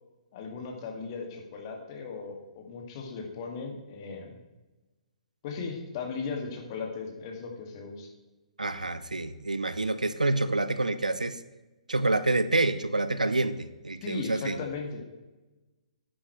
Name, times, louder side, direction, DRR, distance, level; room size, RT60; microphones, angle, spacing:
voice 1, 0.3-4.4 5.4-8.1 14.0-15.1, left 4 dB, 40° left, 1 dB, 2.2 m, -37 dB
voice 2, 8.6-11.4 11.9-14.7, right 2 dB, 85° right, 13 dB, 0.6 m, -27 dB
11.0 x 8.7 x 3.3 m, 1.1 s
figure-of-eight pair, 125°, 4 cm